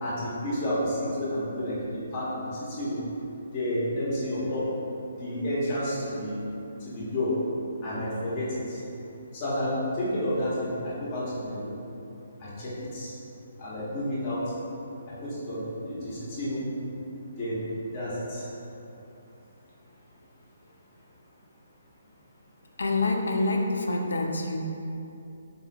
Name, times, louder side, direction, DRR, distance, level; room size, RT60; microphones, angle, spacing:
voice 1, 0.0-3.0 3.5-4.7 5.2-6.4 6.9-7.4 7.8-8.8 9.3-11.7 12.4-13.1 13.6-14.4 15.2-16.7 17.4-17.6 17.9-18.4, left 1 dB, 35° left, -8 dB, 1.0 m, -30 dB
voice 2, 22.8-24.6, left 2 dB, 65° left, 2 dB, 0.4 m, -26 dB
4.0 x 3.8 x 2.2 m, 2.8 s
figure-of-eight pair, 135°, 0 cm